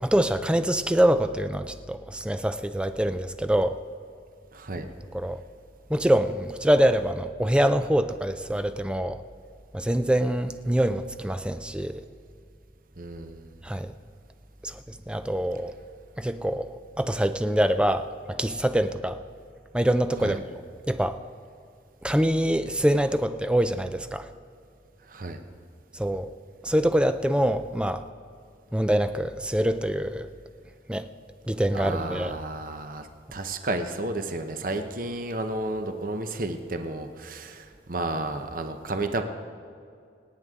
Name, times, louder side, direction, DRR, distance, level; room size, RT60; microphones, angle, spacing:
voice 1, 0.0-3.8 4.8-4.9 5.1-5.4 5.9-9.2 9.7-12.0 13.6-13.9 14.6-15.7 16.2-19.2 19.7-20.4 20.9-21.2 22.0-24.3 25.9-26.3 26.6-28.0 28.7-30.3 30.9-31.1 31.5-32.4, right 1 dB, 5° right, 10 dB, 0.4 m, -25 dB
voice 2, 4.5-4.9 13.0-13.5 20.2-20.4 25.1-25.4 31.7-39.2, right 2 dB, 50° right, 7 dB, 0.9 m, -32 dB
26.5 x 9.2 x 3.7 m, 2.3 s
head